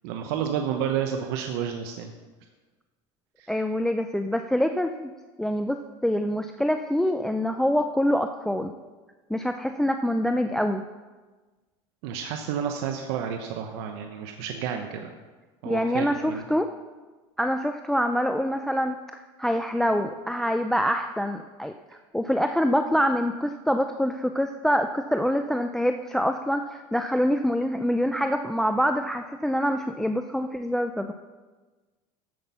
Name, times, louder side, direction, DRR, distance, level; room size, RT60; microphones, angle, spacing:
voice 1, 0.0-2.1 3.4-3.5 12.0-15.1 15.6-16.4, right 8 dB, 80° right, 5 dB, 0.9 m, -30 dB
voice 2, 3.5-5.1 5.4-8.7 9.3-10.8 15.7-16.7 17.4-19.0 19.4-31.1, equal, 5° left, 7 dB, 0.4 m, -25 dB
14.0 x 5.9 x 5.6 m, 1.3 s
supercardioid pair, 115°, 13 cm